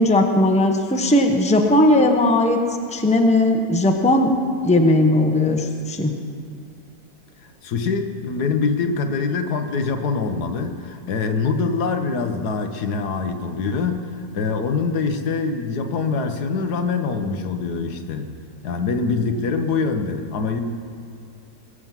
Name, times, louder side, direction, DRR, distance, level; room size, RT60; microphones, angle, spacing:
voice 1, 0.0-2.6 2.9-4.3 4.6-6.1, left 1 dB, 5° left, 3 dB, 0.9 m, -17 dB
voice 2, 7.6-14.1 14.3-18.3 18.6-20.6, left 4 dB, 80° left, 7 dB, 1.6 m, -24 dB
21.0 x 7.6 x 7.4 m, 2.4 s
omnidirectional pair, 1.7 m